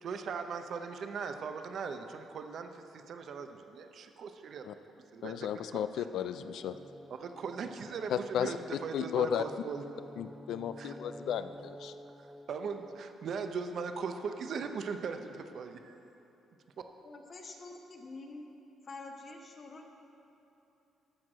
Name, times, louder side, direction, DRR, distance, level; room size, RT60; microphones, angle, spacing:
voice 1, 0.0-4.7 5.1-5.4 7.1-8.5 8.8-9.8 10.8-10.9 12.5-16.0, right 5 dB, 60° right, 7 dB, 0.7 m, -39 dB
voice 2, 5.2-6.8 8.1-8.5 8.9-9.4 10.2-11.9, left 9 dB, 75° left, 12 dB, 0.4 m, -34 dB
sound 1, 6.4-13.0, equal, 5° right, 0.4 m, -52 dB
voice 3, 17.0-18.5 18.8-19.9, left 3 dB, 45° left, 2 dB, 1.1 m, -47 dB
14.0 x 4.7 x 6.3 m, 2.9 s
cardioid pair, 90°, 0 cm